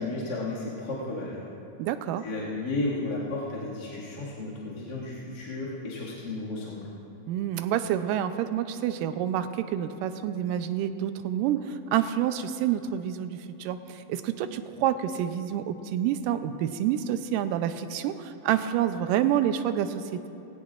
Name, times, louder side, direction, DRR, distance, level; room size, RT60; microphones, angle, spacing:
voice 1, 0.0-1.4 2.2-6.9, left 2 dB, 35° left, -7 dB, 2.1 m, -33 dB
voice 2, 1.8-2.2 7.3-20.3, right 10 dB, 85° right, 10 dB, 2.2 m, -28 dB
19.5 x 16.0 x 2.5 m, 2.8 s
omnidirectional pair, 3.8 m